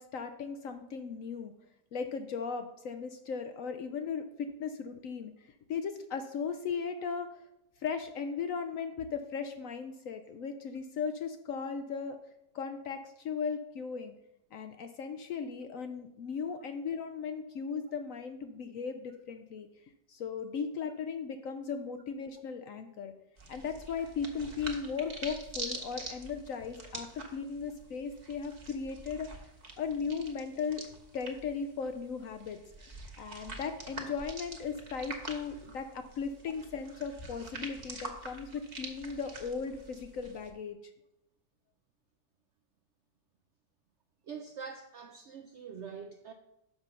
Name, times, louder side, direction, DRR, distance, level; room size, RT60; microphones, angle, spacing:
voice 1, 0.0-1.5 1.9-5.3 5.7-7.4 7.8-12.2 12.5-14.1 14.5-19.7 20.1-23.1 23.5-29.3 29.8-30.8 31.1-32.6 33.2-40.8, left 6 dB, 70° left, 7 dB, 0.8 m, -37 dB
sound 1, 23.4-40.5, right 2 dB, 30° right, 1.0 m, -46 dB
voice 2, 44.3-46.3, right 6 dB, 70° right, 5 dB, 0.6 m, -44 dB
6.5 x 6.0 x 5.5 m, 0.84 s
omnidirectional pair, 1.8 m